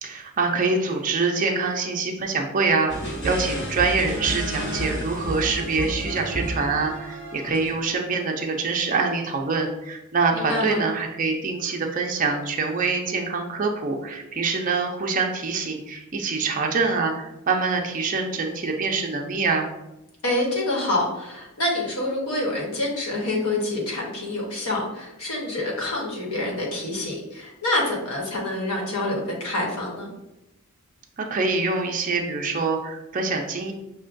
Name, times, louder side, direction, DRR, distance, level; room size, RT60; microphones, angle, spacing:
voice 1, 0.0-19.7 31.2-33.7, right 4 dB, 35° right, 2 dB, 0.5 m, -25 dB
sound 1, 2.9-7.8, right 1 dB, 50° left, 1.0 m, -31 dB
voice 2, 10.3-10.8 20.2-30.1, left 2 dB, 85° left, -2 dB, 1.1 m, -27 dB
6.0 x 2.2 x 2.5 m, 0.92 s
head